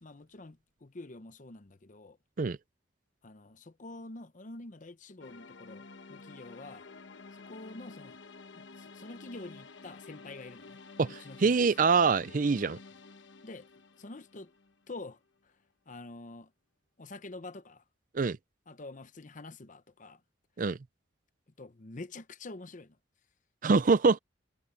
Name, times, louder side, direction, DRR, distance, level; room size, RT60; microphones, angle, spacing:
voice 1, 0.0-2.2 3.2-6.9 7.3-8.2 8.5-10.8 11.1-11.7 13.4-13.7 14.0-14.5 14.9-15.5 15.9-16.5 17.0-17.8 18.7-20.2 21.6-23.0, left 2 dB, 40° left, 0.8 m, -47 dB
sound 1, 5.2-15.2, left 4 dB, 70° left, 1.1 m, -51 dB
voice 2, 11.0-12.8 18.1-18.4 20.6-20.8 23.6-24.2, right 4 dB, 45° right, 0.5 m, -25 dB
head